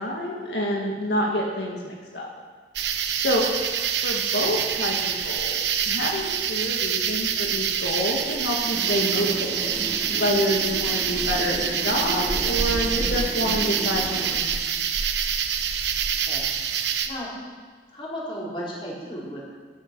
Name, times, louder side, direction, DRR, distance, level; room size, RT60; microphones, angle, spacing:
voice 1, 0.0-2.3 3.2-3.5 4.0-14.6, equal, 80° left, -1 dB, 2.0 m, -27 dB
sound 1, 2.8-17.1, right 7 dB, 80° right, 1.0 m, -26 dB
sound 2, 8.6-14.3, equal, 10° right, 3.5 m, -36 dB
voice 2, 17.9-19.4, equal, 30° left, -6 dB, 4.8 m, -35 dB
13.0 x 12.0 x 6.3 m, 1.5 s
head